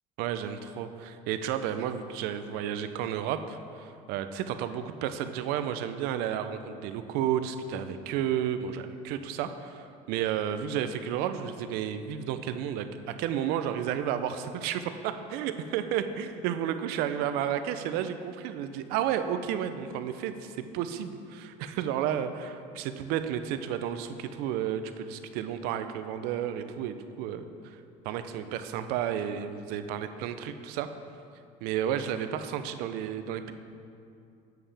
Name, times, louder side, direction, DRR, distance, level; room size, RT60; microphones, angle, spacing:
voice 1, 0.2-27.8 28.0-30.9 31.6-33.5, right 9 dB, 80° right, 10 dB, 0.5 m, -32 dB
7.6 x 7.2 x 3.4 m, 2.5 s
cardioid pair, 130°, 16 cm